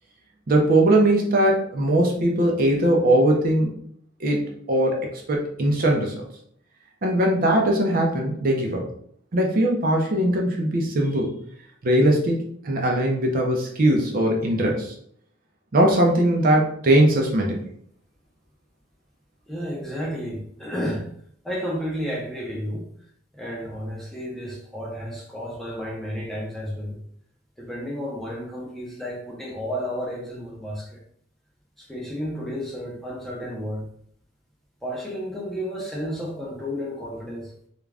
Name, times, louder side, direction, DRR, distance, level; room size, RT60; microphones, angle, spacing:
voice 1, 0.5-3.7 4.2-6.2 7.0-8.9 9.3-11.3 11.8-14.9 15.7-17.6, right 1 dB, 50° right, 0 dB, 0.5 m, -20 dB
voice 2, 19.5-21.0 21.4-22.8 23.3-27.0 27.6-31.0 31.8-33.9 34.8-37.5, equal, ahead, -4 dB, 0.6 m, -32 dB
2.4 x 2.2 x 3.3 m, 0.65 s
head